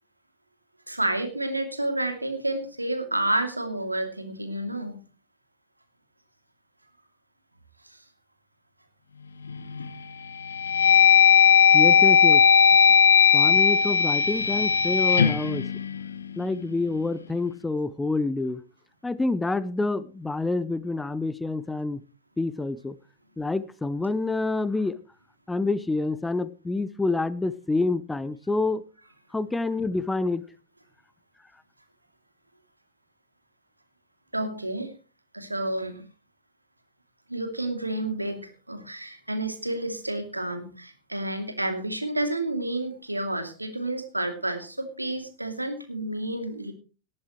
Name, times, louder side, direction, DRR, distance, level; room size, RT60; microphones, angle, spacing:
voice 1, 0.9-5.0 7.8-8.0 34.3-34.9 35.3-36.0 37.3-46.7, right 1 dB, 85° right, 7 dB, 2.7 m, -30 dB
sound 1, 9.5-9.9 10.4-16.6, left 7 dB, 70° left, 1.1 m, -18 dB
voice 2, 11.7-12.4 13.3-15.7 16.4-18.6 19.0-22.0 22.4-22.9 23.4-25.0 25.5-28.8 29.3-30.4, left 3 dB, 10° left, 17 dB, 0.8 m, -27 dB
19.0 x 13.0 x 3.1 m, 0.34 s
figure-of-eight pair, 90°, 0 cm